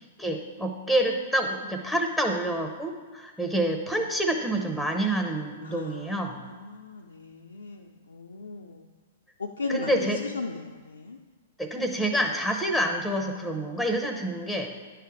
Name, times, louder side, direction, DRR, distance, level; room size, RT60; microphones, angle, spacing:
voice 1, 0.2-6.4 9.7-10.2 11.6-14.7, right 1 dB, 5° right, 4 dB, 0.7 m, -27 dB
voice 2, 5.6-6.1 6.4-8.8 9.4-11.2, left 4 dB, 80° left, 2 dB, 0.4 m, -37 dB
10.0 x 3.4 x 4.8 m, 1.4 s
figure-of-eight pair, 110°, 0 cm